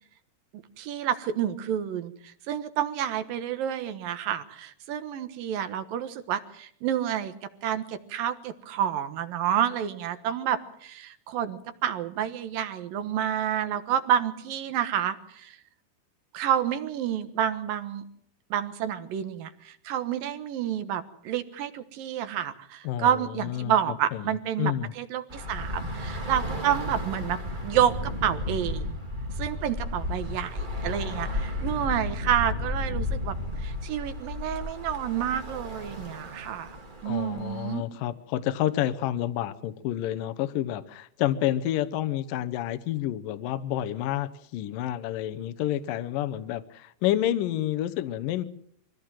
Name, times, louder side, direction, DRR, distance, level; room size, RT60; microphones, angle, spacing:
voice 1, 0.8-7.3 7.6-15.6 16.3-18.0 18.5-29.0 29.4-36.8 37.0-37.8, right 10 dB, 70° right, 10 dB, 3.0 m, -29 dB
voice 2, 22.8-24.9 37.0-48.4, left 12 dB, 70° left, 11 dB, 2.5 m, -29 dB
Bus / Traffic noise roadway noise, 25.3-37.8, left 1 dB, 20° right, 1.2 m, -33 dB
24.5 x 16.5 x 7.6 m, 0.67 s
omnidirectional pair, 4.3 m